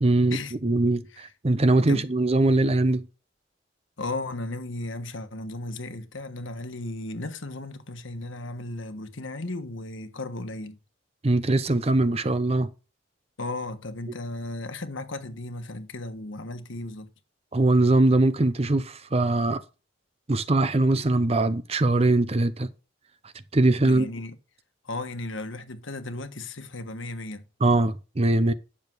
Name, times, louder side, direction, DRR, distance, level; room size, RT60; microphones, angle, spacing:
voice 1, 0.0-3.1 11.2-12.7 17.5-19.6 20.3-22.7 23.5-24.1 27.6-28.5, right 2 dB, 30° right, 0.6 m, -22 dB
voice 2, 4.0-10.8 13.4-17.1 23.8-24.4 24.8-27.4, left 2 dB, 70° left, 1.3 m, -35 dB
10.0 x 6.8 x 4.6 m
head